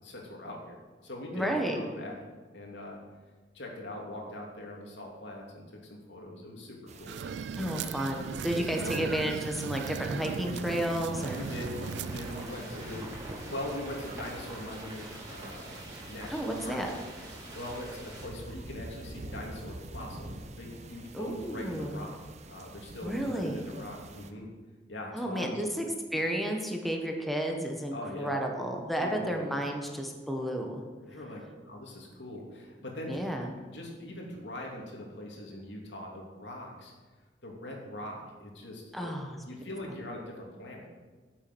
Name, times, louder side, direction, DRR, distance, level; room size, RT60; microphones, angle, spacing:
voice 1, 0.0-2.1 2.5-3.0 3.5-7.2 7.5-7.8 8.5-9.4 11.3-13.1 13.5-15.0 15.3-15.8 16.1-16.8 17.5-22.2 22.5-24.5 24.9-25.6 27.9-28.3 29.0-29.3 31.1-33.2 33.7-36.9 37.4-39.1 39.4-40.9, left 1 dB, 85° left, -1 dB, 3.0 m, -42 dB
voice 2, 1.3-1.8 7.6-11.5 16.3-16.9 21.1-22.0 23.0-23.7 25.1-25.9 26.1-30.8 33.1-33.5 38.9-39.4, equal, ahead, 1 dB, 1.4 m, -32 dB
sound 1, 6.9-24.3, right 2 dB, 40° right, 1.0 m, -47 dB
sound 2, 7.1-12.5, right 6 dB, 75° right, 0.4 m, -37 dB
sound 3, 11.1-18.3, right 1 dB, 20° right, 3.6 m, -45 dB
14.5 x 7.4 x 6.3 m, 1.4 s
head